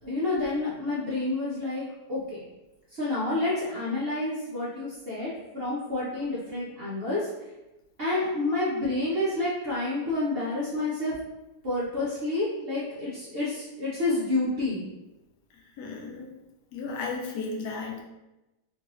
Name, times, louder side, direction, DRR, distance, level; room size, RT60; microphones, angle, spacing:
voice 1, 0.0-2.4 2.9-7.2 8.0-11.1 11.6-14.8, left 2 dB, 50° right, -8 dB, 0.7 m, -29 dB
voice 2, 15.8-16.4 16.7-18.0, left 4 dB, 80° left, 1 dB, 1.2 m, -34 dB
3.0 x 2.5 x 2.9 m, 1.0 s
omnidirectional pair, 1.7 m